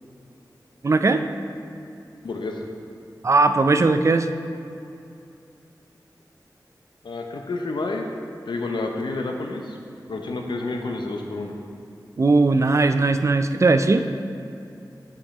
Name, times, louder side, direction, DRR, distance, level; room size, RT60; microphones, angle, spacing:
voice 1, 0.8-1.2 3.2-4.3 12.2-14.0, right 3 dB, 40° right, 9 dB, 0.4 m, -18 dB
voice 2, 2.2-2.6 7.0-8.1 8.5-9.8 10.1-11.5, left 3 dB, 85° left, 2 dB, 0.7 m, -29 dB
7.6 x 5.3 x 4.2 m, 2.6 s
wide cardioid pair, 70°, 8 cm